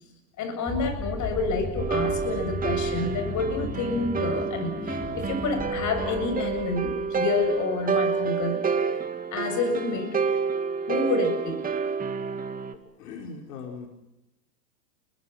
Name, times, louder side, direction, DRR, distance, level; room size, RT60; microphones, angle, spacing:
voice 1, 0.4-9.0 9.3-10.1 10.9-11.6, left 3 dB, 35° left, 7 dB, 7.9 m, -28 dB
sound 1, 0.7-7.5, left 1 dB, 15° left, 5.0 m, -36 dB
sound 2, 1.8-12.7, right 5 dB, 15° right, 2.4 m, -29 dB
voice 2, 13.0-13.9, left 5 dB, 65° left, 1 dB, 5.1 m, -39 dB
30.0 x 23.0 x 6.0 m, 0.90 s
hypercardioid pair, 110°, 50 cm